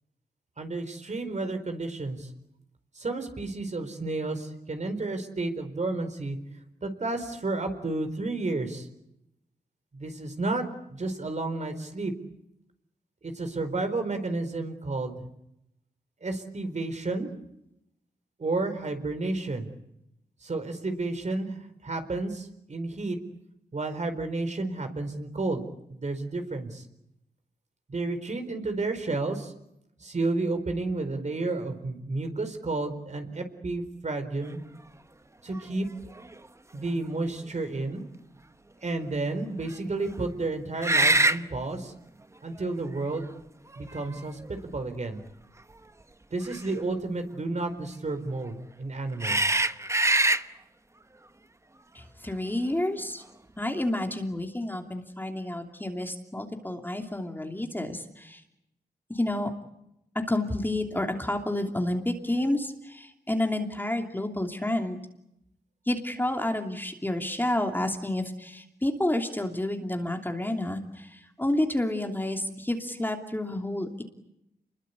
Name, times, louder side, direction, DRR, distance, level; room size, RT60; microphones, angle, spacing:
voice 1, 0.6-2.3 2.9-6.4 6.8-8.9 9.9-10.6 10.9-12.1 13.2-15.2 16.2-17.3 18.4-19.7 20.4-23.2 23.7-25.6 25.9-26.8 27.9-29.5 30.0-34.6 35.4-35.9 36.7-38.0 38.8-41.9 42.4-43.3 43.8-45.2 46.3-49.6, right 2 dB, 45° right, 7 dB, 4.4 m, -31 dB
sound 1, 35.5-35.6 36.1-36.3 40.8-41.4 42.6-42.7 43.7-44.5 46.5-46.7 49.2-50.4, right 2 dB, 15° right, 1.0 m, -23 dB
voice 2, 51.9-53.2 53.6-58.4 59.1-59.5 60.3-65.0 65.9-74.0, left 1 dB, 10° left, 3 dB, 2.9 m, -30 dB
30.0 x 22.0 x 8.3 m, 0.83 s
wide cardioid pair, 110°, 17 cm